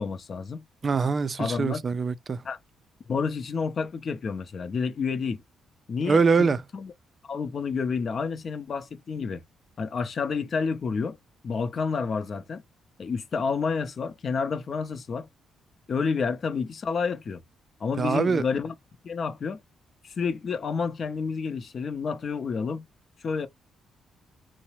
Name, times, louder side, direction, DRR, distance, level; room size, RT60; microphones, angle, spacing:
voice 1, 0.0-0.6 1.4-1.9 2.4-2.6 3.1-5.4 5.9-6.9 7.3-9.4 9.8-11.2 11.4-12.6 13.0-15.3 15.9-17.4 17.8-18.7 19.0-19.6 20.0-22.9 23.2-23.5, left 5 dB, 45° left, 0.6 m, -29 dB
voice 2, 0.8-2.4 6.1-6.6 18.0-18.4, right 5 dB, 40° right, 0.3 m, -23 dB
2.9 x 2.0 x 2.8 m
cardioid pair, 90°, 0 cm